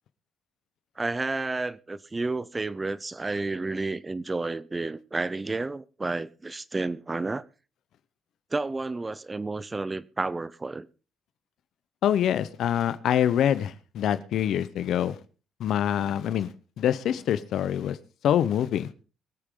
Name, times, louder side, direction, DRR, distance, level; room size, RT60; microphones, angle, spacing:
voice 1, 1.0-7.4 8.5-10.9, right 3 dB, 20° right, 0.6 m, -31 dB
voice 2, 12.0-15.2 15.6-16.5 16.8-18.0 18.2-18.9, left 10 dB, 75° left, 0.9 m, -25 dB
23.5 x 8.5 x 3.8 m
cardioid pair, 90°, 0 cm